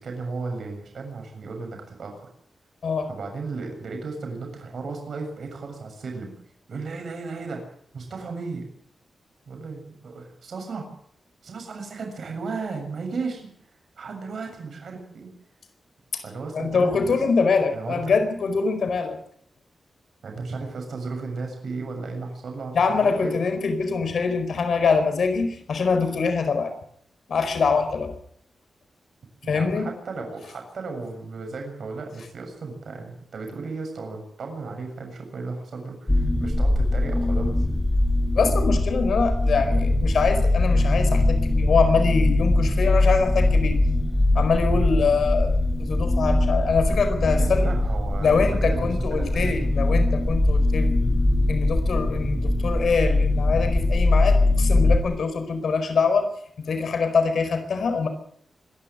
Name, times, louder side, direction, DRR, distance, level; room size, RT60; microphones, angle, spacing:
voice 1, 0.0-2.3 3.1-6.3 6.7-7.6 7.9-8.7 9.5-10.9 11.4-13.5 14.0-15.3 16.2-17.2 17.7-18.1 20.2-23.4 29.4-37.6 44.7-44.9 47.4-49.8, right 4 dB, 65° right, 3 dB, 7.1 m, -35 dB
voice 2, 16.5-19.2 22.7-26.7 27.3-28.1 29.5-29.9 38.3-43.8 44.3-47.7 48.2-50.9 51.5-56.3 56.7-58.1, left 5 dB, 70° left, 8 dB, 4.6 m, -24 dB
sound 1, 36.1-55.0, left 2 dB, 10° left, 2.2 m, -21 dB
25.5 x 12.0 x 9.9 m, 0.66 s
wide cardioid pair, 155°, 0 cm